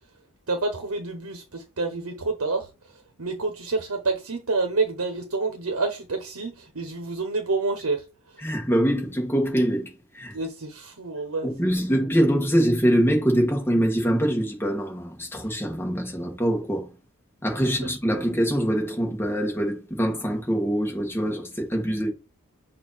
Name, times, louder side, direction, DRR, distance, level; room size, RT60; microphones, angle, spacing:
voice 1, 0.5-2.7 3.2-8.0 10.3-11.5, right 3 dB, 85° right, 1.0 m, -28 dB
voice 2, 8.4-10.3 11.4-16.9 17.4-22.1, equal, 10° left, 1.6 m, -24 dB
6.4 x 2.8 x 5.5 m
head